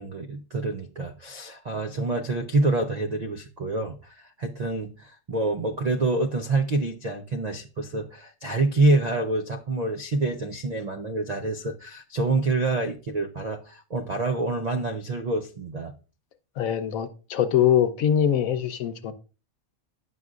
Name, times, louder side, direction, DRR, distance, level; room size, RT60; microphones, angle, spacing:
voice 1, 0.0-15.9, right 2 dB, 65° right, 0.4 m, -27 dB
voice 2, 16.6-19.1, left 9 dB, 75° left, 1.1 m, -23 dB
9.2 x 5.7 x 2.4 m
omnidirectional pair, 1.5 m